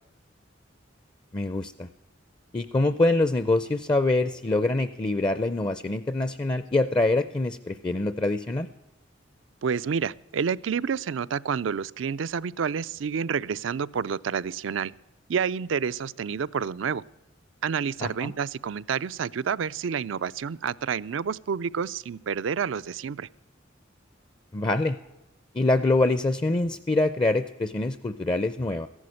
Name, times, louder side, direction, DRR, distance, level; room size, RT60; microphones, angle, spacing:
voice 1, 1.3-1.9 2.5-8.7 18.0-18.3 24.5-25.0 25.5-28.9, left 2 dB, 25° left, 13 dB, 0.4 m, -25 dB
voice 2, 9.6-14.9 15.3-17.0 17.6-23.3, right 6 dB, 85° right, 16 dB, 0.4 m, -29 dB
14.5 x 11.0 x 6.3 m, 0.99 s
head